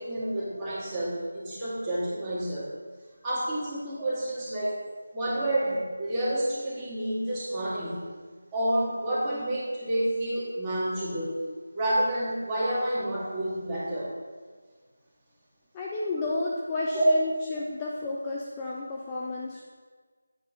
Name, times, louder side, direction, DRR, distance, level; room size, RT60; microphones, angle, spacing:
voice 1, 0.0-2.7 3.2-4.8 5.1-8.1 8.5-11.4 11.7-14.1 16.9-17.0, right 1 dB, 15° right, -10 dB, 2.1 m, -29 dB
voice 2, 15.7-19.6, left 2 dB, 15° left, -4 dB, 0.5 m, -32 dB
8.4 x 4.3 x 5.0 m, 1.5 s
figure-of-eight pair, 160°, 0 cm